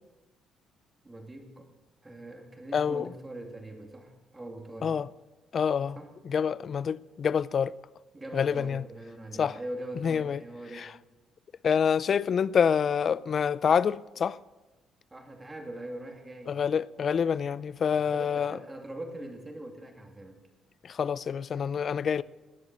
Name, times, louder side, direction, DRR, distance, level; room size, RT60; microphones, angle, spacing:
voice 1, 1.0-1.7 2.0-5.0 5.9-6.1 8.1-10.9 15.1-16.6 18.0-20.4 22.1-22.2, right 1 dB, 15° right, 2.6 m, -42 dB
voice 2, 2.7-3.1 4.8-5.1 5.5-6.0 6.3-7.7 8.3-8.8 9.4-9.6 10.0-10.4 10.8-10.9 11.6-14.4 16.5-18.6 20.8-22.2, left 7 dB, 45° left, 0.4 m, -27 dB
19.0 x 10.5 x 6.2 m
cardioid pair, 120°, 0 cm